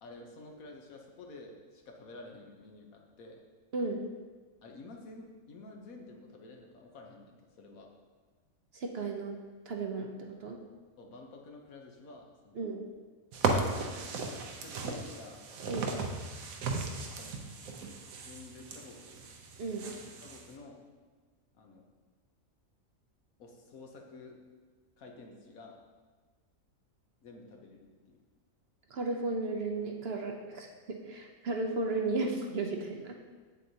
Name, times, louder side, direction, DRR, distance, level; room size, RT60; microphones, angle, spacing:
voice 1, 0.0-3.4 4.6-7.9 11.0-12.6 13.9-14.2 14.6-16.1 17.2-17.4 18.3-19.2 19.8-20.8 21.5-21.8 23.4-24.4 25.0-25.8 27.2-28.2, left 2 dB, 80° left, 1 dB, 1.4 m, -50 dB
voice 2, 3.7-4.0 8.7-9.4 9.7-10.6 12.6-12.8 15.7-15.9 19.6-19.9 28.9-33.2, right 3 dB, 55° right, 2 dB, 0.8 m, -34 dB
sound 1, 13.3-20.5, right 3 dB, 80° right, 1.2 m, -36 dB
7.6 x 7.5 x 2.8 m, 1.4 s
omnidirectional pair, 1.5 m